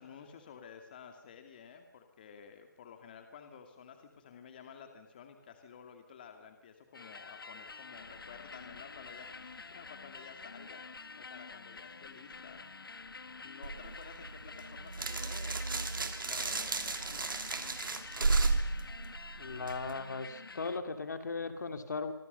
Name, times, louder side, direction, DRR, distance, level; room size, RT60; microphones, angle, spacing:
voice 1, 0.0-12.6 13.4-17.4, left 7 dB, 25° left, 6 dB, 2.5 m, -52 dB
sound 1, 6.9-20.8, left 4 dB, 85° left, 1.7 m, -48 dB
Opening plastic wrapper, 13.6-19.9, right 3 dB, 70° right, 3.2 m, -33 dB
voice 2, 19.4-22.1, left 4 dB, 55° left, 8 dB, 2.8 m, -37 dB
27.5 x 24.5 x 6.9 m, 0.88 s
figure-of-eight pair, 165°, 11 cm